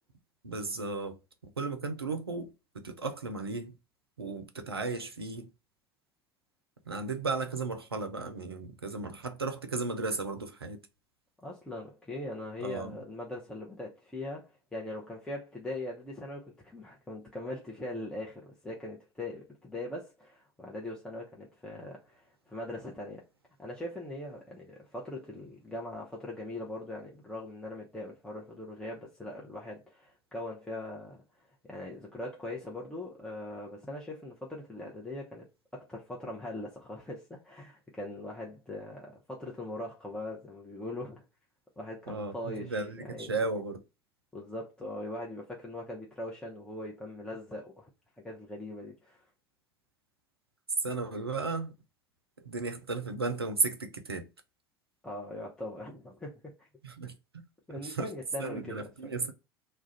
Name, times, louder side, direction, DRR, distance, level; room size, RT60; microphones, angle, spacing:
voice 1, 0.4-1.2 1.4-2.5 2.7-3.7 4.2-5.5 6.9-10.8 12.6-13.0 42.1-43.8 50.8-51.7 52.4-54.3 56.8-57.4 57.8-58.1 58.4-59.3, right 3 dB, 85° right, 0.4 m, -35 dB
voice 2, 11.4-23.2 23.6-31.2 31.6-35.5 35.7-41.2 41.8-43.3 44.3-47.9 48.2-49.2 55.0-56.7 57.7-59.1, left 1 dB, 5° left, 0.6 m, -41 dB
2.4 x 2.1 x 3.7 m
figure-of-eight pair, 70°, 13 cm